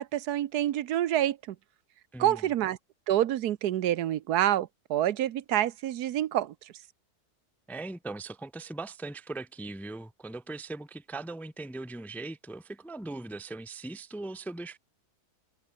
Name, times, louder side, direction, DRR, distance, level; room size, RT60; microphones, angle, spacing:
voice 1, 0.0-1.5 2.2-2.8 3.1-6.5, right 12 dB, 85° right, 1.3 m, -27 dB
voice 2, 2.1-2.5 7.7-14.8, right 2 dB, ahead, 0.7 m, -39 dB
omnidirectional pair, 1.6 m